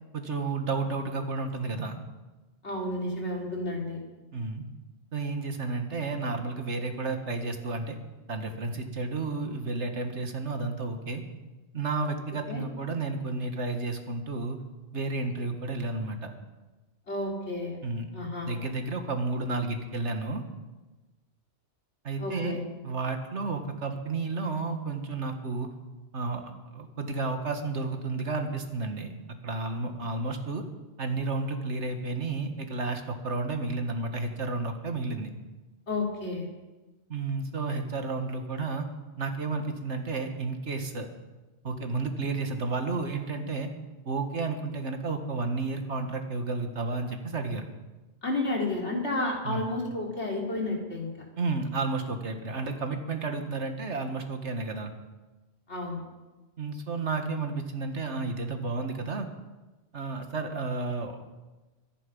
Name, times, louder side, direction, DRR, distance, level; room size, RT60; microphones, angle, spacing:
voice 1, 0.1-2.0 4.3-4.6 5.1-8.0 8.3-11.2 11.7-14.6 14.9-16.3 17.8-18.1 18.5-20.4 22.0-22.6 22.8-25.7 26.1-29.1 29.4-30.6 31.0-35.3 37.1-38.9 39.2-41.1 41.6-43.7 44.1-47.7 49.4-49.6 51.4-54.9 56.6-59.3 59.9-61.3, right 3 dB, 90° right, 6 dB, 2.0 m, -32 dB
voice 2, 2.6-4.0 12.5-12.6 17.1-17.8 18.1-18.6 22.2-22.6 35.9-36.5 48.2-51.1 55.7-56.0, left 2 dB, 75° left, 0 dB, 3.6 m, -31 dB
23.5 x 10.5 x 5.5 m, 1.2 s
omnidirectional pair, 1.2 m